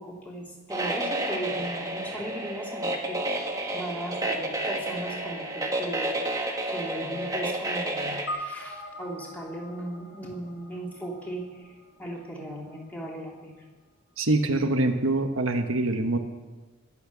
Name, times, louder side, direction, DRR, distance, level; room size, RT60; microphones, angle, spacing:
voice 1, 0.0-13.6, right 1 dB, 10° left, -3 dB, 3.3 m, -38 dB
sound 1, 0.7-8.3, right 1 dB, 15° right, 1.6 m, -30 dB
sound 2, 8.3-12.8, equal, 70° left, 3.4 m, -41 dB
voice 2, 14.2-16.2, right 2 dB, 80° right, 5 dB, 1.3 m, -24 dB
21.5 x 8.5 x 7.0 m, 1.2 s
head